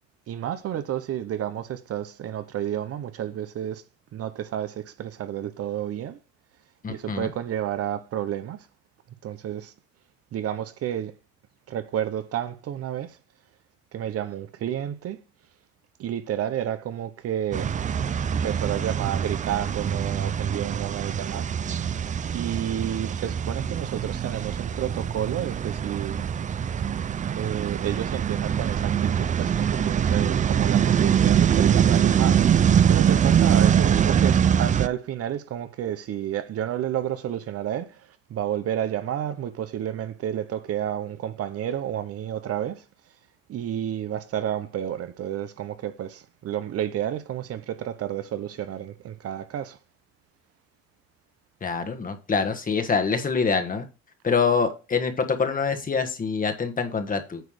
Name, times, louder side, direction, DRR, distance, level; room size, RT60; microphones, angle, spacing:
voice 1, 0.3-3.8 4.1-6.2 6.9-8.7 9.2-9.7 10.3-11.1 11.7-13.2 13.9-15.2 16.0-17.7 18.3-21.5 22.3-26.2 27.4-32.5 32.9-42.8 43.5-49.8, right 10 dB, 50° right, 0.9 m, -31 dB
voice 2, 6.8-7.3 51.6-53.8 54.2-57.4, left 5 dB, 25° left, 1.4 m, -25 dB
sound 1, 17.5-34.9, right 8 dB, 25° right, 0.4 m, -23 dB
9.2 x 3.2 x 6.4 m
supercardioid pair, 95°, 30 cm